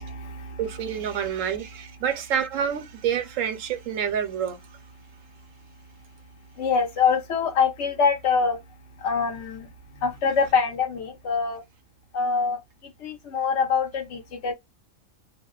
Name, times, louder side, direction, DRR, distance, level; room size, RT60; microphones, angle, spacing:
voice 1, 0.0-0.6 6.6-8.6 9.0-11.6 12.1-14.5, left 5 dB, 65° left, 1.1 m, -25 dB
voice 2, 0.6-4.8, right 8 dB, 75° right, 1.0 m, -28 dB
2.8 x 2.0 x 2.2 m
omnidirectional pair, 1.4 m